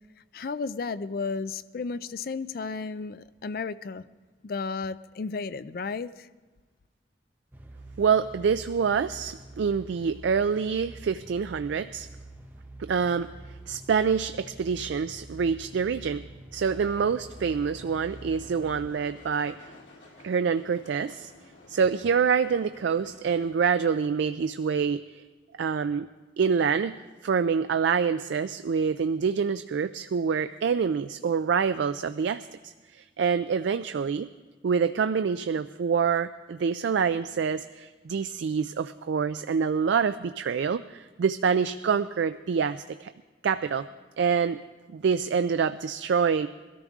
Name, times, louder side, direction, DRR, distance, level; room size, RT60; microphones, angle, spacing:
voice 1, 0.3-4.0 4.4-6.3, left 4 dB, 50° left, 15 dB, 0.4 m, -33 dB
sound 1, 7.5-18.9, right 2 dB, 10° right, 0.8 m, -46 dB
voice 2, 8.0-12.1 12.8-13.3 13.7-16.2 16.5-19.6 20.2-21.3 21.7-25.2 25.6-26.1 26.4-34.3 34.6-43.1 43.4-43.9 44.2-44.6 44.9-46.5, right 6 dB, 75° right, 11 dB, 0.3 m, -26 dB
sound 2, 16.6-23.5, left 2 dB, 85° left, 2.3 m, -52 dB
21.5 x 13.5 x 3.6 m, 1.3 s
head